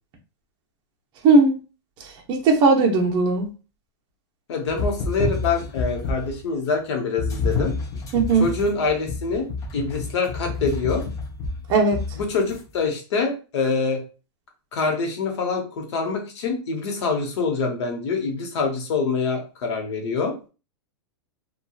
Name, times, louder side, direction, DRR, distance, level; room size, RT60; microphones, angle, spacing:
voice 1, 1.2-1.6 2.3-3.5 8.1-8.5 11.7-12.0, right 3 dB, 30° right, 1 dB, 0.7 m, -17 dB
voice 2, 4.5-7.7 8.4-9.5 9.7-11.0 12.1-14.0 14.7-20.4, left 4 dB, 70° left, 2 dB, 0.9 m, -25 dB
sound 1, 4.7-6.4 7.2-12.6, left 4 dB, 25° left, 0.5 m, -29 dB
2.9 x 2.3 x 2.3 m, 0.33 s
supercardioid pair, 150°, 15 cm